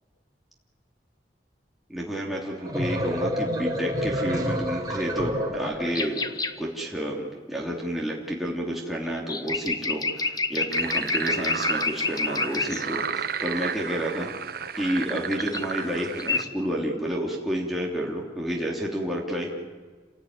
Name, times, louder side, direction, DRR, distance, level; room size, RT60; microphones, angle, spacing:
voice 1, 1.9-6.2 6.6-14.5 14.8-19.5, equal, ahead, -3 dB, 2.9 m, -30 dB
sound 1, 2.4-6.3, equal, 20° right, 4.0 m, -29 dB
sound 2, 5.9-6.6 9.2-12.8 15.4-15.9 16.2-16.5, left 3 dB, 20° left, 1.0 m, -28 dB
sound 3, 10.7-16.4, right 6 dB, 60° right, 1.1 m, -32 dB
28.5 x 17.0 x 9.5 m, 1.4 s
head